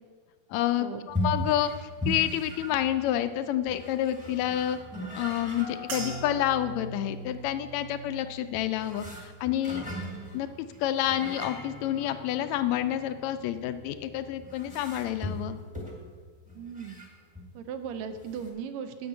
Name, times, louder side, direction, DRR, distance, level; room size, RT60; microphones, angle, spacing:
voice 1, 0.5-4.8 5.1-9.8 10.3-15.6, left 12 dB, 80° left, 11 dB, 1.8 m, -29 dB
sound 1, 1.1-17.5 17.9-18.0 18.2-18.5, left 1 dB, 5° right, 0.9 m, -39 dB
sound 2, 5.9-10.4 10.8-11.4 12.0-12.2, right 4 dB, 45° right, 1.7 m, -43 dB
voice 2, 16.6-17.0 17.5-19.1, right 7 dB, 75° right, 9 dB, 1.9 m, -37 dB
8.6 x 6.1 x 7.9 m, 1.5 s
omnidirectional pair, 3.3 m